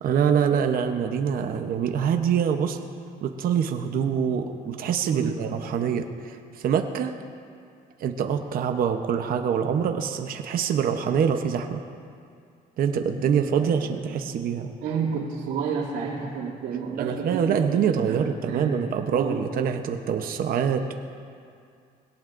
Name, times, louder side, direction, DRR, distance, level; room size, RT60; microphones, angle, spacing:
voice 1, 0.0-2.8 3.2-7.1 8.0-11.8 12.8-14.7 17.0-20.9, right 7 dB, 60° right, 6 dB, 0.9 m, -25 dB
voice 2, 5.0-5.4 13.6-14.0 14.8-18.8 19.1-19.5, right 5 dB, 85° right, -7 dB, 2.7 m, -31 dB
21.5 x 17.5 x 2.6 m, 2.3 s
cardioid pair, 110°, 17 cm